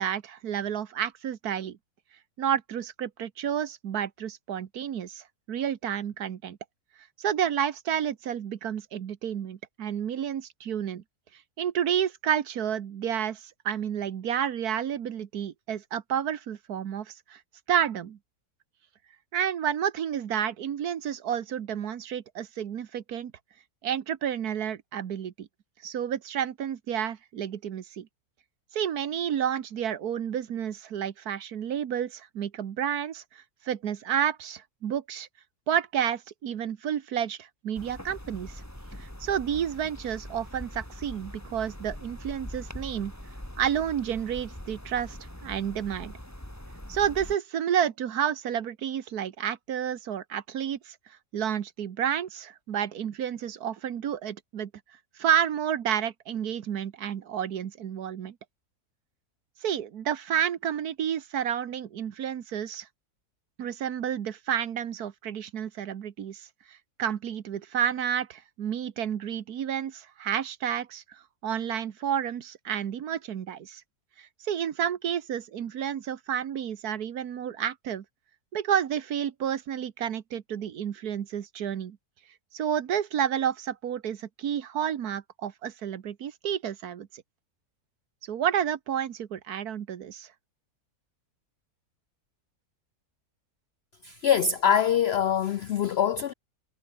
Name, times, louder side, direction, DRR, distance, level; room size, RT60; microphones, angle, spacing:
voice 1, 0.0-1.8 2.4-6.6 7.2-11.0 11.6-17.4 17.7-18.2 19.3-23.3 23.8-25.5 25.8-28.1 28.7-35.3 35.7-38.6 39.0-43.1 43.6-46.1 46.9-50.9 51.3-54.7 55.2-58.3 59.6-62.9 63.6-73.8 74.2-78.0 78.5-82.0 82.5-87.2 88.2-90.3, right 9 dB, 80° right, 1.6 m, -30 dB
sound 1, 37.7-47.4, equal, 10° left, 4.7 m, -42 dB
voice 2, 94.0-96.3, left 8 dB, 75° left, 0.6 m, -24 dB
omnidirectional pair, 1.6 m